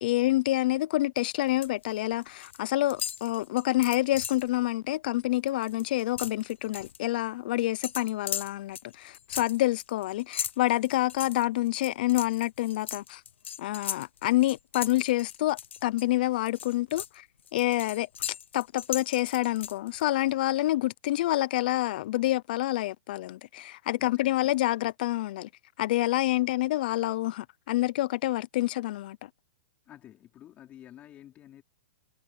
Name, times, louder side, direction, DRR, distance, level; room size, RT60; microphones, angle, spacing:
voice 1, 0.0-13.2 13.6-17.2 17.5-18.1 18.5-25.5 25.8-29.3, left 16 dB, 50° left, 0.7 m, -27 dB
sound 1, 1.2-1.8 2.1-2.6 2.9-4.5 4.9-5.1 5.4-7.0 7.8-16.0 16.5-20.0, left 9 dB, 85° left, 1.0 m, -38 dB
voice 2, 24.0-24.5 26.4-26.5 29.9-31.6, left 12 dB, 20° left, 4.8 m, -51 dB
hypercardioid pair, 155°, 6 cm